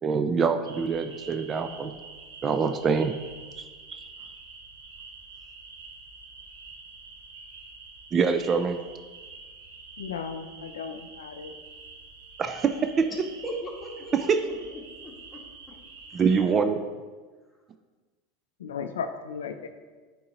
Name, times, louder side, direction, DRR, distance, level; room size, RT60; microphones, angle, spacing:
voice 1, 0.0-2.0 2.4-3.1 3.6-4.1 8.1-8.8 12.4-13.1 14.1-14.4 16.1-16.8, right 5 dB, 30° right, 8 dB, 0.4 m, -25 dB
sound 1, 0.6-16.4, right 4 dB, 85° right, 1.0 m, -47 dB
voice 2, 10.0-11.5 18.6-19.7, left 6 dB, 90° left, 8 dB, 0.4 m, -35 dB
voice 3, 13.4-15.4 16.1-16.3, equal, 15° left, -3 dB, 1.7 m, -39 dB
8.9 x 3.9 x 2.9 m, 1.4 s
hypercardioid pair, 100°, 0 cm